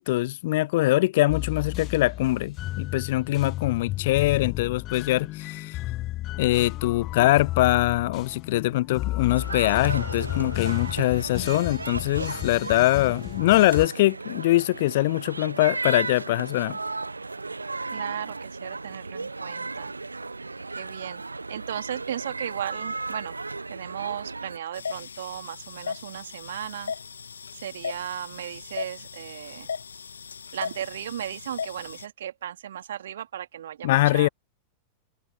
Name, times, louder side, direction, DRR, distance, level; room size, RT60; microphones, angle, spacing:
voice 1, 0.0-5.8 6.4-16.8 33.8-34.3, left 17 dB, 55° left, 0.6 m, -23 dB
sound 1, 1.3-13.9, left 16 dB, 35° left, 1.0 m, -33 dB
sound 2, 9.3-24.6, right 3 dB, 80° right, 1.2 m, -35 dB
voice 2, 17.9-19.9 20.7-21.2 21.5-23.4 23.7-26.9 27.6-29.7 30.5-34.3, right 10 dB, 60° right, 2.8 m, -36 dB
sound 3, 24.7-32.0, left 6 dB, 70° left, 1.7 m, -37 dB
figure-of-eight pair, 90°, 0 cm